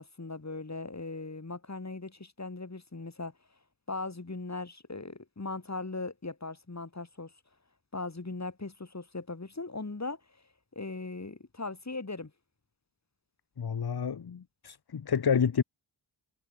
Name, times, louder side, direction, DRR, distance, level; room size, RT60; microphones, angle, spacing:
voice 1, 0.0-3.3 3.9-7.3 7.9-10.2 10.7-12.3, left 3 dB, 35° left, 6.2 m, -39 dB
voice 2, 13.6-15.6, left 7 dB, 50° left, 1.4 m, -29 dB
cardioid pair, 55°, 47 cm